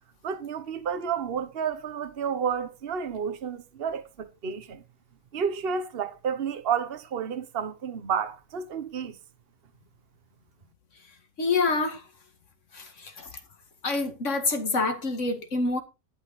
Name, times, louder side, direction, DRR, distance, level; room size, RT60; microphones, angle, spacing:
voice 1, 0.2-4.8 5.3-9.2, right 7 dB, 45° right, 1.2 m, -31 dB
voice 2, 11.4-12.0 12.7-13.3 13.8-15.8, left 3 dB, 55° left, 2.2 m, -27 dB
12.0 x 9.5 x 4.1 m
omnidirectional pair, 1.6 m